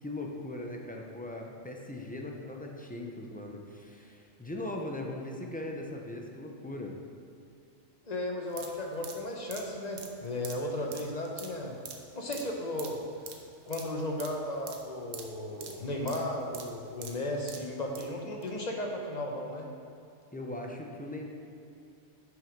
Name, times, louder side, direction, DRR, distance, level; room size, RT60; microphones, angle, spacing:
voice 1, 0.0-7.0 20.3-21.3, left 1 dB, 10° left, 0 dB, 0.6 m, -39 dB
voice 2, 8.1-11.8 12.1-13.0 13.6-19.7, left 1 dB, 35° left, 1 dB, 1.0 m, -35 dB
sound 1, 8.5-18.1 18.4-18.5, right 6 dB, 70° right, 1.1 m, -46 dB
7.2 x 6.3 x 5.2 m, 2.6 s
omnidirectional pair, 1.4 m